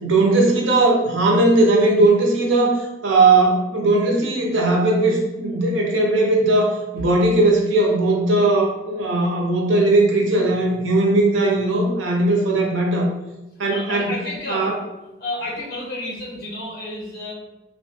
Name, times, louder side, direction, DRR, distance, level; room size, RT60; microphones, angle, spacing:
voice 1, 0.0-13.1 13.6-14.1 14.5-14.8, right 2 dB, 80° right, 0 dB, 0.7 m, -18 dB
voice 2, 13.7-14.7 15.2-17.3, left 2 dB, 55° left, -5 dB, 1.1 m, -31 dB
3.1 x 2.2 x 2.8 m, 1.0 s
head